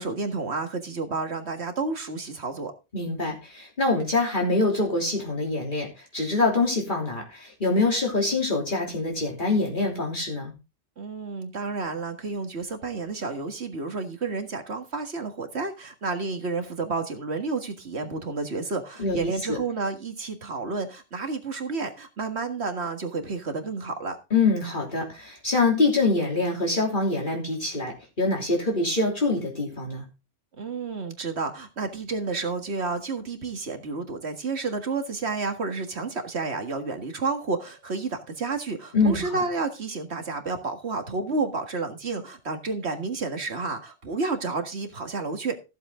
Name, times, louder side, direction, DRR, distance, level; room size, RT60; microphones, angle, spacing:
voice 1, 0.0-2.7 11.0-24.2 30.6-45.6, right 4 dB, 65° right, 2.0 m, -30 dB
voice 2, 2.9-5.9 6.1-10.5 19.0-19.6 24.3-30.0 38.9-39.4, left 3 dB, 45° left, 3.3 m, -25 dB
14.5 x 7.8 x 3.7 m
omnidirectional pair, 1.2 m